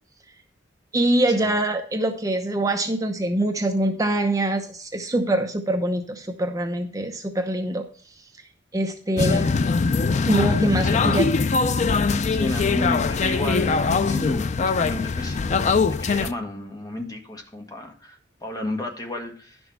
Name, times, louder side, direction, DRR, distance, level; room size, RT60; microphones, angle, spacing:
voice 1, 0.9-7.8 8.7-9.6 10.3-11.3, right 1 dB, 20° right, 4 dB, 0.8 m, -24 dB
sound 1, 9.2-16.3, left 4 dB, 40° left, 0.4 m, -22 dB
voice 2, 10.7-11.3 12.3-15.4 15.8-19.6, left 1 dB, 20° left, 3 dB, 1.4 m, -32 dB
11.0 x 6.2 x 4.6 m, 0.43 s
head